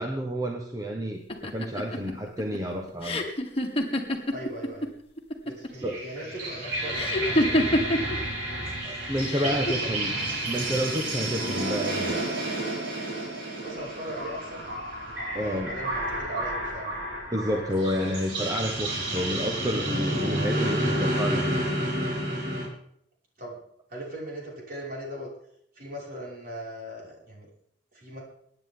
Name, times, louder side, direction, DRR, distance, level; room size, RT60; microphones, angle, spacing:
voice 1, 0.0-3.2 5.8-6.0 8.8-10.1 10.5-12.4 15.3-15.7 17.3-21.7, equal, 20° right, 2 dB, 1.1 m, -30 dB
sound 1, 1.3-4.9 5.2-5.8 6.9-8.2 9.1-9.7, left 1 dB, 30° left, 1.9 m, -26 dB
voice 2, 4.3-4.9 5.4-7.8 9.4-9.9 13.6-14.7 15.3-17.1 23.4-23.6 23.9-25.3 25.7-27.5 27.9-28.2, right 1 dB, 50° right, -4 dB, 5.8 m, -39 dB
sound 2, 5.7-22.7, right 1 dB, 90° right, 5.5 m, -30 dB
23.5 x 9.9 x 3.8 m, 0.69 s
head